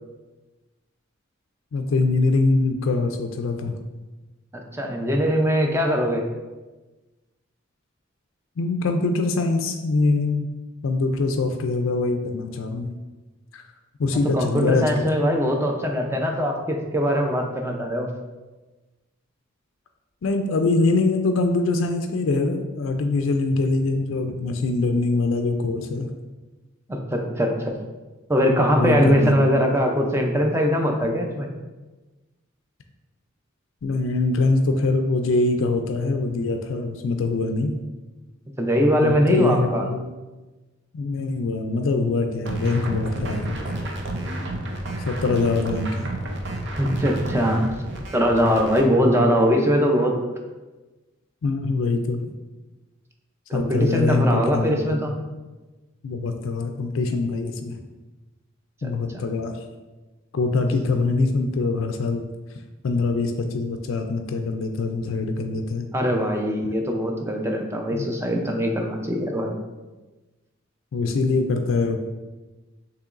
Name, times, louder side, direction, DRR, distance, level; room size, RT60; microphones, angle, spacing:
voice 1, 1.7-3.8 8.6-10.5 10.8-12.9 13.5-13.6 14.0-15.0 20.2-26.1 28.6-29.3 33.8-37.7 39.0-40.1 40.9-43.6 45.0-46.1 51.4-52.2 53.5-55.0 56.0-57.8 58.8-59.5 60.3-62.3 62.8-65.9 67.9-68.1 70.9-72.0, left 3 dB, 75° left, 5 dB, 0.4 m, -23 dB
voice 2, 4.5-6.2 14.3-18.1 26.9-27.8 28.3-31.5 38.6-39.8 46.7-47.7 48.1-50.2 53.5-55.1 58.8-59.2 65.9-69.5, equal, 15° right, 2 dB, 0.5 m, -21 dB
sound 1, 42.5-48.9, right 1 dB, 60° right, 0.6 m, -31 dB
6.6 x 3.0 x 2.5 m, 1.2 s
head